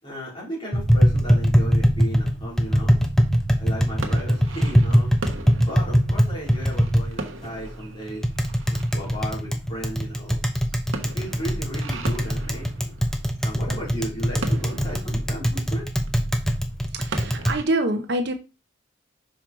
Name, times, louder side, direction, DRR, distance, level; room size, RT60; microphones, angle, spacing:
voice 1, 0.0-3.0 3.6-5.1 5.6-8.2 8.7-10.4 11.0-13.0 13.4-15.9, equal, 25° left, 4.0 m, -35 dB
Tap, 0.7-17.6, equal, ahead, 0.8 m, -22 dB
sound 1, 2.6-17.6, right 2 dB, 85° right, 1.0 m, -39 dB
voice 2, 16.9-18.3, right 1 dB, 60° right, 0.8 m, -25 dB
5.7 x 4.9 x 4.4 m
head